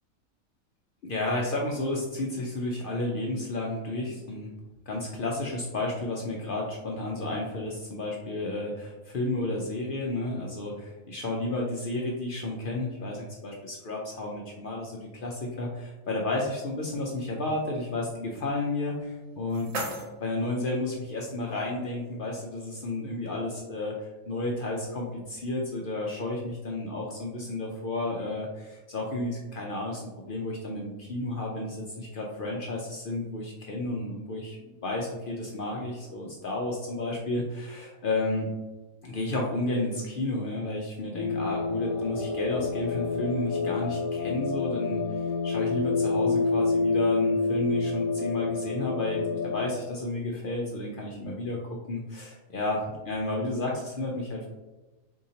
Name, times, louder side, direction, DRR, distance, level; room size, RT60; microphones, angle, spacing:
voice 1, 1.0-4.5 4.9-19.7 20.2-38.5 39.0-45.0 45.4-52.8 53.0-54.5, left 2 dB, 70° left, -2 dB, 0.5 m, -32 dB
sound 1, 19.0-21.0, right 2 dB, 75° right, 1.2 m, -38 dB
sound 2, 41.2-49.7, left 4 dB, 85° left, 1.0 m, -28 dB
2.8 x 2.7 x 3.9 m, 1.1 s
omnidirectional pair, 1.4 m